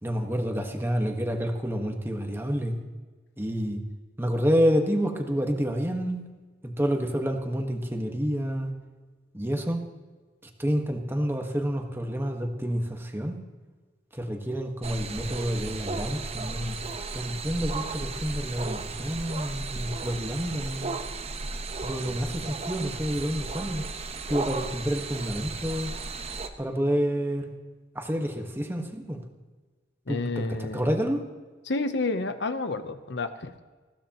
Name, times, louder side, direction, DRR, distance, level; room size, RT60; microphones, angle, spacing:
voice 1, 0.0-2.8 3.4-3.8 4.2-6.3 6.6-8.7 9.3-9.8 10.6-13.4 14.1-16.8 17.1-20.9 21.8-23.8 24.3-25.9 26.6-27.5 27.9-29.2 30.1-31.2, equal, 15° right, 4 dB, 1.4 m, -28 dB
sound 1, 14.8-26.5, right 3 dB, 35° right, 0.9 m, -35 dB
voice 2, 30.1-30.9 31.6-33.6, left 3 dB, 70° left, 9 dB, 0.9 m, -30 dB
20.0 x 15.5 x 3.0 m, 1.3 s
head